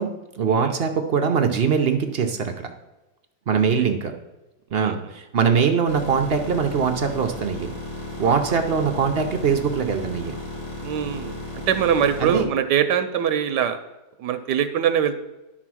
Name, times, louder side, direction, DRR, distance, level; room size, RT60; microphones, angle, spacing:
voice 1, 0.0-2.7 3.5-4.1 4.7-7.7 8.2-10.4 12.2-12.5, right 6 dB, 60° right, 5 dB, 0.6 m, -22 dB
sound 1, 5.9-12.4, left 2 dB, 90° left, 3.4 m, -34 dB
voice 2, 10.8-11.4 11.7-13.8 14.2-15.2, right 9 dB, 80° right, 10 dB, 1.2 m, -23 dB
11.0 x 4.1 x 6.1 m, 1.0 s
omnidirectional pair, 1.9 m